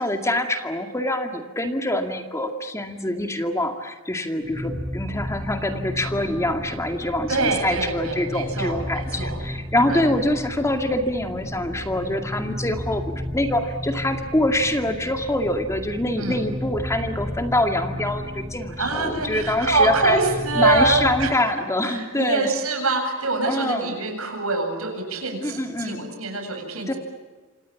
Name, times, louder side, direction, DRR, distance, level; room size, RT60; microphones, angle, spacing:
voice 1, 0.0-20.2 20.5-22.5 23.5-23.9 25.4-26.1 26.9-27.0, left 1 dB, 15° left, 5 dB, 2.2 m, -25 dB
sound 1, 4.4-21.4, left 1 dB, 10° right, 1.6 m, -33 dB
voice 2, 7.3-9.4 9.9-10.0 16.2-16.4 18.8-21.3 21.8-27.0, right 3 dB, 75° right, 5 dB, 8.0 m, -24 dB
28.5 x 26.5 x 7.2 m, 1.3 s
head